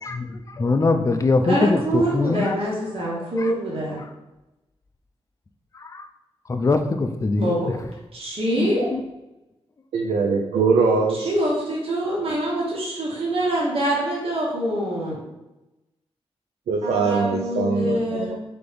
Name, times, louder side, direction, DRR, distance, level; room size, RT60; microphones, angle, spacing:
voice 1, 0.0-4.1 5.7-6.1 6.5-7.8 8.6-9.0, left 3 dB, 30° left, 7 dB, 0.4 m, -24 dB
voice 2, 1.5-4.0 7.4-7.7 8.1-8.9 11.1-15.2 16.8-18.4, right 1 dB, 60° right, -5 dB, 1.3 m, -25 dB
voice 3, 9.9-11.3 16.7-18.4, right 4 dB, 90° right, 1 dB, 0.4 m, -22 dB
3.8 x 3.4 x 3.4 m, 0.99 s
cardioid pair, 60°, 11 cm